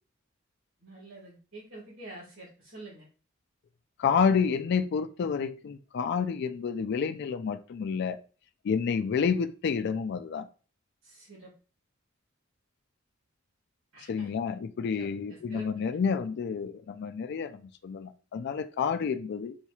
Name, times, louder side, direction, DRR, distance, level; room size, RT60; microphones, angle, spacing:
voice 1, 0.8-3.1 11.0-11.5 13.9-14.3 15.0-16.0, right 2 dB, 80° right, 1.9 m, -47 dB
voice 2, 4.0-8.2 8.6-10.5 14.1-19.6, left 6 dB, 55° left, 0.3 m, -29 dB
4.0 x 3.0 x 2.3 m
head